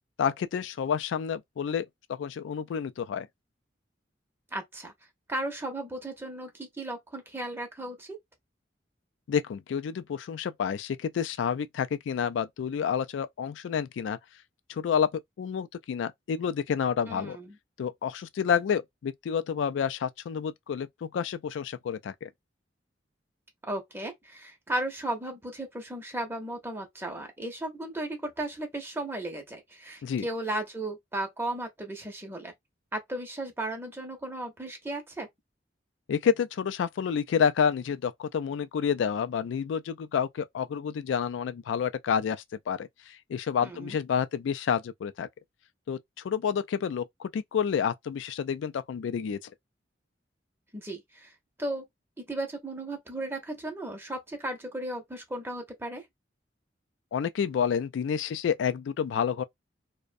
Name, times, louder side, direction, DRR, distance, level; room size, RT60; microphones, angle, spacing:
voice 1, 0.2-3.3 9.3-14.2 14.7-17.4 17.8-22.3 30.0-30.2 36.1-45.3 45.9-46.0 46.2-49.5 57.1-59.4, left 7 dB, 75° left, 0.3 m, -29 dB
voice 2, 4.5-4.9 5.3-8.2 17.1-17.6 23.6-32.5 32.9-35.3 43.6-44.0 50.7-51.3 51.6-51.8 52.2-56.0, right 1 dB, 15° right, 0.7 m, -35 dB
2.4 x 2.1 x 2.5 m
head